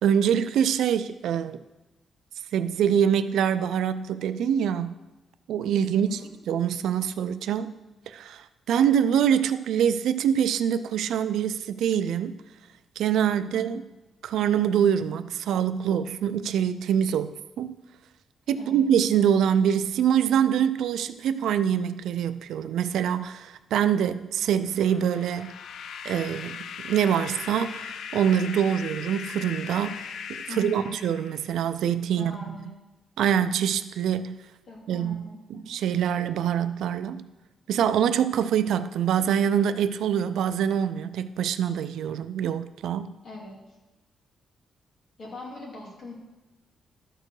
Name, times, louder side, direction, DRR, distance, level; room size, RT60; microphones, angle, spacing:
voice 1, 0.0-1.6 2.5-4.9 5.5-6.2 6.5-7.7 8.1-12.4 13.0-13.8 14.2-17.7 18.5-25.6 26.0-32.6 33.2-34.4 34.9-37.2 37.7-43.2, right 9 dB, 90° right, 0.4 m, -25 dB
voice 2, 5.9-6.3 13.5-13.8 18.6-18.8 30.5-30.9 32.2-32.7 34.7-35.8 43.2-43.8 45.2-46.1, left 2 dB, 40° left, 2.4 m, -41 dB
sound 1, 24.6-31.7, left 7 dB, 70° left, 0.4 m, -39 dB
12.5 x 4.5 x 4.8 m
wide cardioid pair, 175°, 0 cm